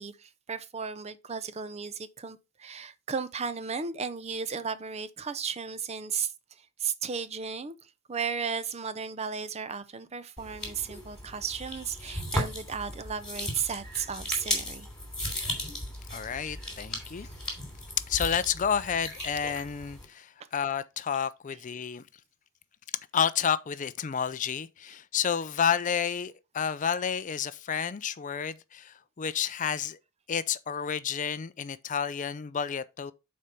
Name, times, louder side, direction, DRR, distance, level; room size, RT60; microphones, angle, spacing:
voice 1, 0.0-6.3 6.8-7.7 8.1-14.9 15.2-15.3 17.1-17.3 21.5-21.6, right 6 dB, 30° right, 0.5 m, -35 dB
sound 1, 10.4-20.1, left 1 dB, 5° left, 3.1 m, -36 dB
voice 2, 16.1-17.3 18.1-22.0 23.1-30.0 30.3-33.1, left 7 dB, 35° left, 0.4 m, -30 dB
6.7 x 4.4 x 5.2 m
head